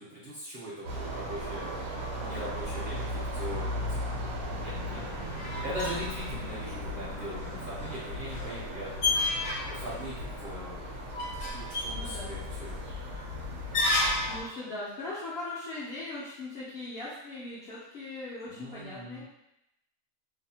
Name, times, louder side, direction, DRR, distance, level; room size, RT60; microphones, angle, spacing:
voice 1, 0.0-1.9 2.2-4.2 4.5-5.0 5.6-9.0 9.7-10.9 11.5-12.8 18.5-19.2, equal, 55° right, -8 dB, 0.6 m, -40 dB
sound 1, 0.8-14.4, left 1 dB, 75° right, 1.0 m, -37 dB
voice 2, 4.6-5.9 11.9-12.3 13.9-19.2, left 2 dB, 65° left, -8 dB, 0.6 m, -40 dB
sound 2, 4.7-14.5, left 2 dB, 80° left, 1.1 m, -34 dB
2.7 x 2.0 x 2.7 m, 0.85 s
omnidirectional pair, 1.6 m